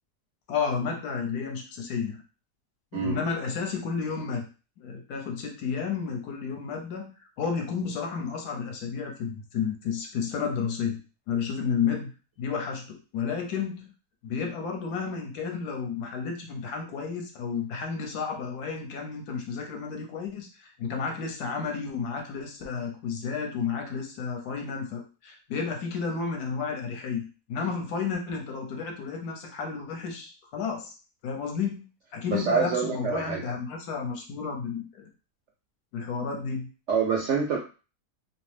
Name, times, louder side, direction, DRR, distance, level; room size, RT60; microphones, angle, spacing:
voice 1, 0.5-2.2 2.9-4.4 4.8-7.1 7.4-11.0 11.3-12.1 12.4-13.9 14.2-27.2 27.5-30.9 31.2-31.8 32.1-35.1 35.9-36.7, left 6 dB, 75° left, 2 dB, 1.2 m, -32 dB
voice 2, 32.3-33.4 36.9-37.6, right 5 dB, 70° right, -1 dB, 0.6 m, -26 dB
2.8 x 2.0 x 3.2 m, 0.33 s
omnidirectional pair, 1.8 m